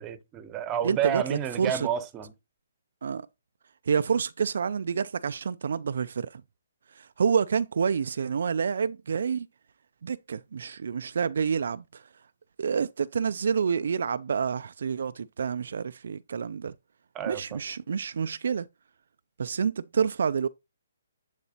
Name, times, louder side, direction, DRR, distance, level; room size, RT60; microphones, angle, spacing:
voice 1, 0.0-2.3 17.1-17.6, right 10 dB, 15° right, 0.9 m, -30 dB
voice 2, 0.8-1.9 3.0-3.3 3.9-6.4 6.9-9.5 10.0-12.0 12.6-16.7 17.3-18.7 19.4-20.5, right 6 dB, 65° right, 0.3 m, -28 dB
11.0 x 4.0 x 2.8 m
hypercardioid pair, 160°, 0 cm